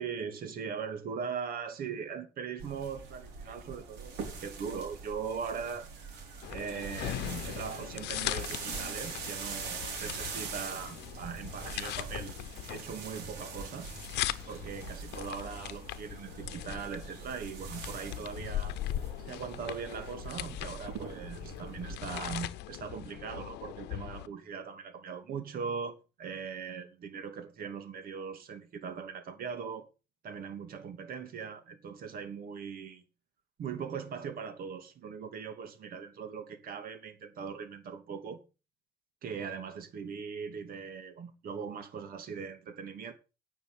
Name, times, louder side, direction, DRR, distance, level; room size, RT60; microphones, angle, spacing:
voice 1, 0.0-5.9 6.5-12.3 12.7-13.9 14.5-18.7 19.2-29.9 30.2-33.0 33.6-38.4 39.2-43.1, right 6 dB, 60° right, 2.7 m, -40 dB
sound 1, 2.6-22.0, right 5 dB, 80° right, 4.5 m, -43 dB
sound 2, 6.4-24.3, left 15 dB, 85° left, 0.9 m, -40 dB
10.0 x 6.3 x 7.6 m
cardioid pair, 110°, 17 cm